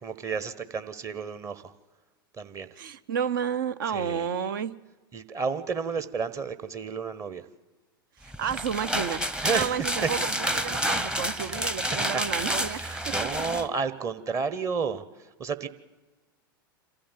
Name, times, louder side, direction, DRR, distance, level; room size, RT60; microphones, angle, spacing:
voice 1, 0.0-1.7 2.4-2.7 3.9-4.3 5.1-7.4 9.4-9.7 10.0-10.1 11.4-11.5 12.1-12.2 12.7-15.7, right 5 dB, 25° right, 12 dB, 1.1 m, -31 dB
voice 2, 2.8-4.7 8.2-13.6, right 7 dB, 65° right, 14 dB, 0.8 m, -31 dB
sound 1, 8.3-13.7, equal, 5° right, 0.8 m, -29 dB
27.0 x 14.0 x 7.4 m, 1.2 s
figure-of-eight pair, 95°, 12 cm